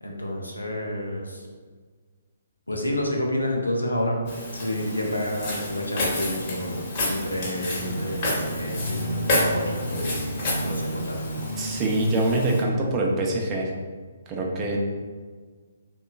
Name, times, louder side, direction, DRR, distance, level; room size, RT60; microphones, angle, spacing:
voice 1, 0.0-1.5 2.7-4.2 4.5-6.8 7.0-10.2 10.6-11.3, left 1 dB, 85° left, 0 dB, 0.5 m, -29 dB
Walk footsteps, 4.3-12.6, left 1 dB, 35° left, 0.8 m, -30 dB
sound 1, 7.8-12.9, equal, 85° right, 0.5 m, -33 dB
voice 2, 11.6-13.7 14.3-14.8, right 2 dB, 25° right, -1 dB, 0.4 m, -24 dB
2.8 x 2.2 x 2.3 m, 1.5 s
figure-of-eight pair, 130°, 0 cm